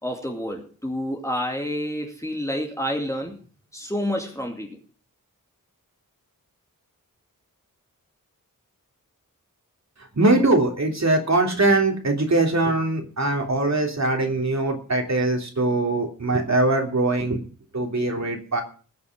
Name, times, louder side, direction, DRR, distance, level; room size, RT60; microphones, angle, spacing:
voice 1, 0.0-3.4 3.7-4.8, equal, 10° left, 1 dB, 2.4 m, -29 dB
voice 2, 10.2-17.4 17.7-18.6, right 2 dB, 50° right, 2 dB, 3.3 m, -22 dB
20.0 x 7.0 x 6.1 m, 0.39 s
wide cardioid pair, 95°, 34 cm